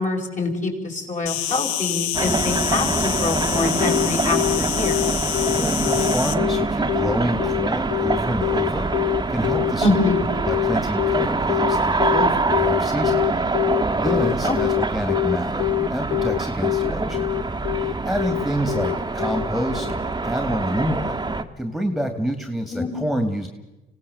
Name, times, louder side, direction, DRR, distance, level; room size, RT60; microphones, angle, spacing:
voice 1, 0.0-5.1 9.8-10.3 14.4-14.6 22.7-22.9, left 2 dB, 35° left, 1 dB, 5.7 m, -25 dB
Insect, 1.3-6.3, left 12 dB, 85° left, 1.1 m, -27 dB
sound 1, 2.1-21.4, right 3 dB, 20° right, 1.5 m, -25 dB
Telephone, 3.8-20.0, left 19 dB, 60° left, 0.8 m, -24 dB
voice 2, 5.5-8.9 9.3-9.9 10.5-13.2 14.0-17.3 17.8-21.2 21.6-23.5, equal, ahead, 7 dB, 2.4 m, -27 dB
26.0 x 17.0 x 7.1 m, 1.0 s
supercardioid pair, 75°, 21 cm